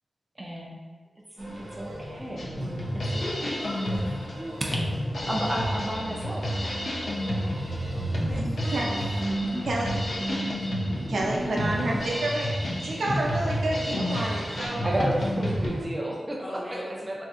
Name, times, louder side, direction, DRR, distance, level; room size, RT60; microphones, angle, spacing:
voice 1, 0.4-0.8 1.6-2.5 2.9-3.5 5.3-6.6 11.7-12.0 14.8-16.8 17.1-17.2, right 1 dB, 15° right, -3 dB, 0.4 m, -32 dB
sound 1, 1.4-15.9, right 1 dB, 40° right, 1.1 m, -35 dB
Drum kit, 2.4-15.7, left 1 dB, 60° left, 0.5 m, -31 dB
voice 2, 3.2-5.0 7.3-7.8 8.1-9.0 16.4-17.1, equal, 20° left, -6 dB, 0.8 m, -39 dB
voice 3, 8.4-8.9 9.7-10.1 11.1-15.1, right 2 dB, 90° right, -3 dB, 0.5 m, -30 dB
3.6 x 2.6 x 2.4 m, 1.4 s
wide cardioid pair, 145°, 0 cm